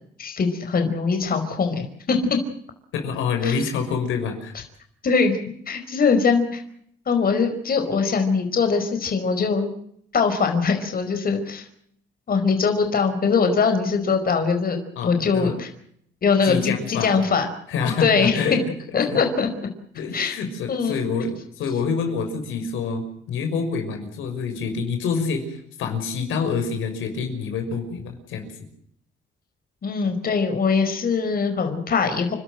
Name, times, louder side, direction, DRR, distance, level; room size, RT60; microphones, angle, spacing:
voice 1, 0.2-2.2 3.4-3.6 5.0-5.4 5.7-6.6 7.1-9.7 10.1-11.7 12.3-15.7 16.2-17.5 17.8-18.4 18.9-19.5 20.1-20.4 20.7-21.1 29.8-32.4, left 5 dB, 50° left, 6 dB, 5.0 m, -22 dB
voice 2, 2.9-4.5 15.0-15.5 16.4-17.2 17.7-18.6 19.1-19.2 19.9-21.3 21.6-28.5, left 5 dB, 85° left, 5 dB, 6.0 m, -27 dB
30.0 x 13.0 x 8.9 m, 0.68 s
cardioid pair, 90°, 20 cm